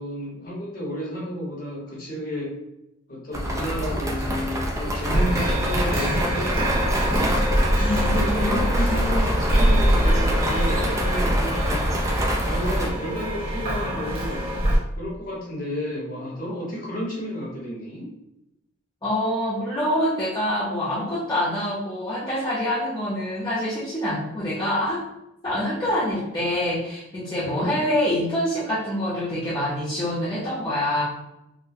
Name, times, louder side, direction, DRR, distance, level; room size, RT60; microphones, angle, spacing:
voice 1, 0.0-2.5 3.1-7.7 8.0-12.0 12.4-14.5 15.0-18.1 27.4-27.9, equal, 40° left, -5 dB, 1.1 m, -32 dB
sound 1, 3.3-12.9, equal, 15° right, 0.3 m, -24 dB
sound 2, 5.1-14.8, equal, 50° right, 1.2 m, -25 dB
voice 2, 7.8-8.6 19.0-25.0 25.4-31.0, left 1 dB, 20° left, -10 dB, 0.7 m, -26 dB
3.9 x 2.2 x 2.7 m, 0.88 s
head